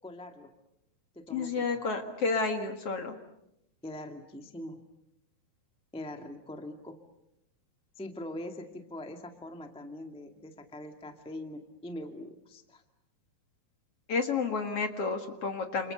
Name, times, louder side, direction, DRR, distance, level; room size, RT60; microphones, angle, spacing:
voice 1, 0.0-0.5 1.1-1.8 3.8-4.8 5.9-7.0 8.0-12.8, left 1 dB, 5° left, 5 dB, 0.8 m, -42 dB
voice 2, 1.3-3.2 14.1-15.9, left 4 dB, 50° left, 6 dB, 2.2 m, -31 dB
29.0 x 28.5 x 6.8 m, 0.83 s
omnidirectional pair, 4.4 m